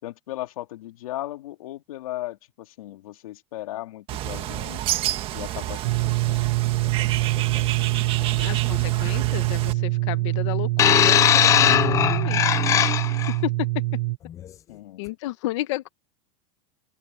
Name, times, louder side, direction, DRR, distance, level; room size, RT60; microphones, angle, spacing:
voice 1, 0.0-4.8 5.3-6.5 6.8-7.7 8.0-8.6 14.7-15.2, left 15 dB, 90° left, 3.2 m, -37 dB
Bird, 4.1-9.7, right 14 dB, 30° right, 1.7 m, -30 dB
sound 1, 5.8-14.2, right 20 dB, 50° right, 0.8 m, -24 dB
voice 2, 8.4-13.7 15.0-15.9, left 17 dB, 60° left, 1.3 m, -32 dB
sound 2, 10.8-13.3 14.3-14.4, left 10 dB, 20° left, 0.4 m, -19 dB
supercardioid pair, 165°, 17 cm